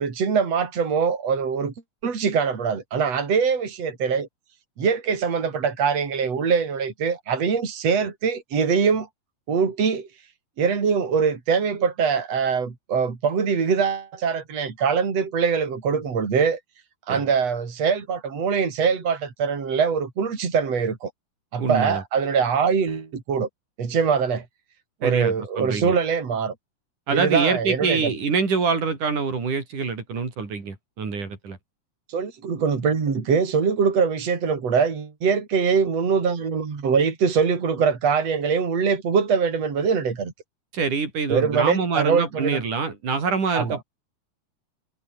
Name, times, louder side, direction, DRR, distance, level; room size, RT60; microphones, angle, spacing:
voice 1, 0.0-1.7 2.0-4.3 4.8-9.1 9.5-10.1 10.6-16.6 17.1-21.1 21.5-23.5 23.8-24.4 25.0-26.5 27.1-28.1 32.1-40.3 41.3-42.6 43.5-43.8, right 6 dB, 55° right, 4.9 m, -23 dB
voice 2, 21.6-22.0 25.0-25.9 27.1-31.6 40.7-43.8, right 5 dB, 85° right, 6.5 m, -25 dB
omnidirectional pair, 3.5 m